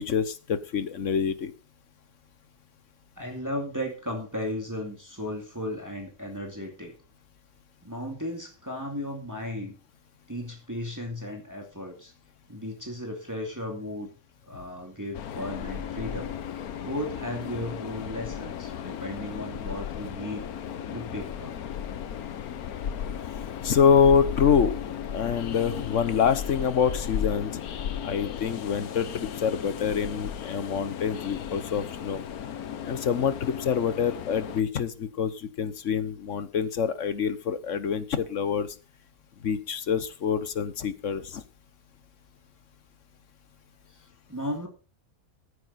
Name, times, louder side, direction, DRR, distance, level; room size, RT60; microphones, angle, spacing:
voice 1, 0.0-1.5 23.6-24.7 25.1-27.6 28.0-32.2 32.8-38.7 39.4-41.4, left 7 dB, 60° left, 14 dB, 1.3 m, -26 dB
voice 2, 3.2-7.0 7.8-9.8 10.3-12.1 12.5-14.1 14.5-20.4 20.9-21.6 43.9-44.7, left 1 dB, 10° right, 1 dB, 2.5 m, -35 dB
Train, 15.1-34.6, left 9 dB, 80° left, 1.4 m, -35 dB
14.5 x 9.8 x 4.2 m, 0.33 s
omnidirectional pair, 1.5 m